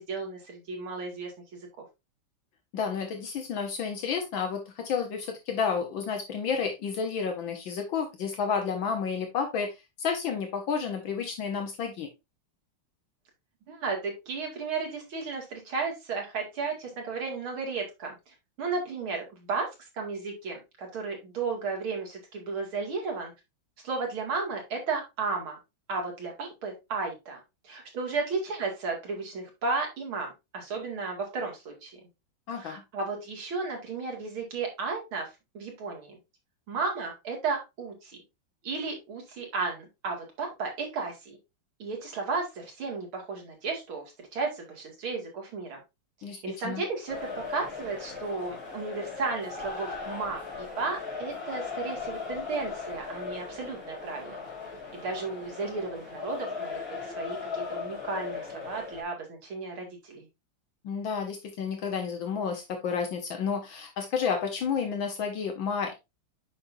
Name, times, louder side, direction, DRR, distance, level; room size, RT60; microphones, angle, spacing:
voice 1, 0.0-1.6 13.7-19.7 19.9-23.3 23.8-25.6 25.9-31.9 32.6-35.3 35.5-36.2 36.7-38.2 38.6-41.4 41.8-45.8 46.4-54.4 54.9-60.3, right 4 dB, 85° right, 1 dB, 3.1 m, -34 dB
voice 2, 2.7-12.1 32.5-32.8 46.2-46.4 46.6-46.8 60.8-65.9, left 6 dB, 70° left, 4 dB, 1.8 m, -31 dB
sound 1, 47.1-59.0, left 5 dB, 40° left, 4.2 m, -38 dB
8.6 x 5.4 x 2.7 m, 0.23 s
omnidirectional pair, 2.2 m